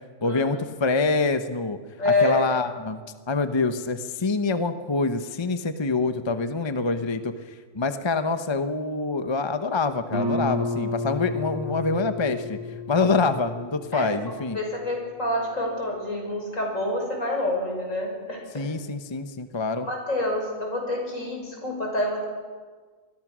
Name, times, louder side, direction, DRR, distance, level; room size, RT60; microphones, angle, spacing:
voice 1, 0.2-1.8 2.0-3.0 3.3-7.3 7.7-12.6 12.9-14.6 18.5-19.9, left 3 dB, 25° left, 9 dB, 0.9 m, -25 dB
voice 2, 2.0-2.5 13.9-14.1 14.5-18.7 19.8-22.2, left 2 dB, 75° left, 1 dB, 6.2 m, -27 dB
Guitar, 10.1-15.5, left 2 dB, 45° left, 5.0 m, -32 dB
26.0 x 20.5 x 6.2 m, 1.5 s
omnidirectional pair, 1.4 m